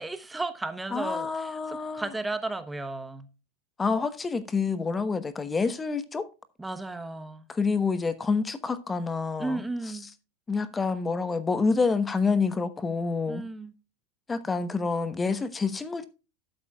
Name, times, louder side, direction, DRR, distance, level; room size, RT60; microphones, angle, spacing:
voice 1, 0.0-3.3 6.6-7.4 9.4-10.1 13.3-13.7, right 2 dB, 10° right, 1.0 m, -34 dB
voice 2, 0.9-2.1 3.8-6.3 7.5-9.6 10.5-13.4 14.3-16.1, left 4 dB, 20° left, 1.0 m, -27 dB
12.0 x 9.0 x 2.3 m
hypercardioid pair, 105°, 0 cm